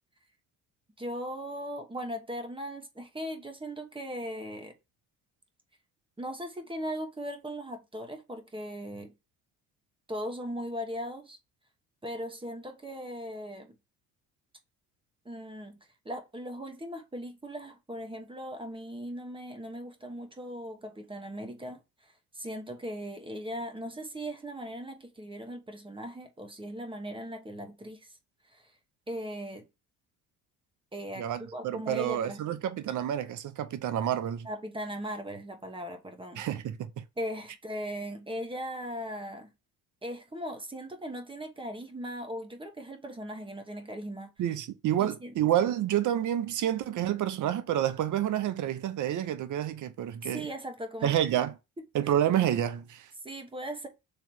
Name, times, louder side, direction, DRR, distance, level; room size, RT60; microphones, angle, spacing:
voice 1, 1.0-4.7 6.2-9.1 10.1-11.4 12.0-13.8 15.2-15.8 16.0-28.1 28.5-28.7 29.1-29.7 30.9-32.4 34.4-36.4 37.2-39.5 40.0-44.3 45.0-45.3 50.3-51.2 52.0-52.1 53.2-53.9, equal, 15° right, 1.0 m, -38 dB
voice 2, 31.2-34.5 36.4-36.9 44.4-50.5 51.0-51.5 51.9-53.1, right 11 dB, 55° right, 0.7 m, -29 dB
3.3 x 2.9 x 4.2 m
supercardioid pair, 75°, 36 cm